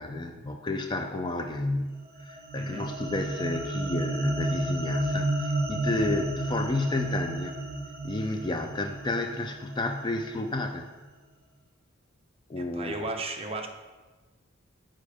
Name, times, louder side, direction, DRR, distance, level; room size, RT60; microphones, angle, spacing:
voice 1, 0.0-7.6 8.0-10.9 12.5-13.0, left 2 dB, 20° left, 5 dB, 0.4 m, -31 dB
sound 1, 2.0-10.5, right 1 dB, 45° right, 1.4 m, -32 dB
voice 2, 2.5-2.9 12.6-13.7, right 2 dB, 30° right, 3 dB, 0.7 m, -35 dB
7.1 x 4.5 x 4.9 m, 1.3 s
head